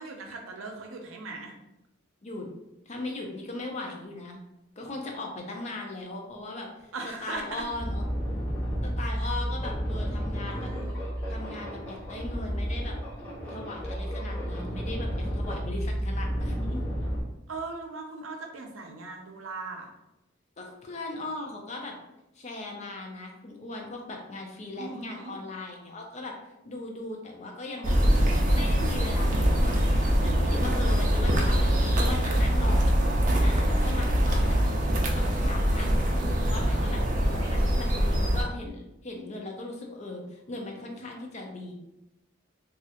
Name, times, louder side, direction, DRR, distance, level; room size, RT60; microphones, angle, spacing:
voice 1, 0.0-1.5 6.9-7.6 9.2-9.3 10.4-11.0 17.5-19.9 24.8-25.3, right 3 dB, 85° right, 3 dB, 0.6 m, -39 dB
voice 2, 2.9-4.4 4.8-6.9 7.2-8.0 8.8-10.7 11.3-13.0 13.5-16.8 20.6-21.9 22.4-26.3 26.6-27.9 28.5-32.9 33.4-34.6 35.1-41.7, left 2 dB, 35° left, 1 dB, 0.5 m, -38 dB
sound 1, 6.8-6.9 7.3-17.2, equal, 10° left, 1.3 m, -32 dB
sound 2, 27.8-38.4, equal, 40° right, 0.4 m, -23 dB
3.1 x 2.4 x 2.8 m, 0.92 s
head